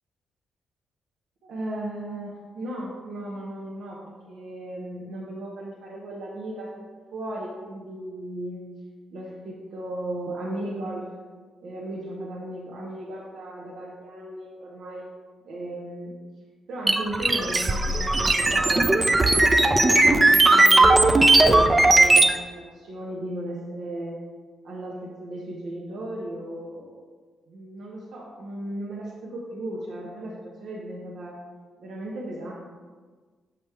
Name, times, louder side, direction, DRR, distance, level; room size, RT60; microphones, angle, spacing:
voice 1, 1.4-8.6 9.1-11.1 11.6-15.1 15.4-16.1 16.7-19.8 20.1-24.2 24.6-27.0 27.5-31.4 31.8-32.5, right 1 dB, 65° right, -5 dB, 0.9 m, -36 dB
sound 1, 16.9-22.4, right 2 dB, 25° right, 0.5 m, -17 dB
7.5 x 3.0 x 4.6 m, 1.4 s
hypercardioid pair, 40°, 0 cm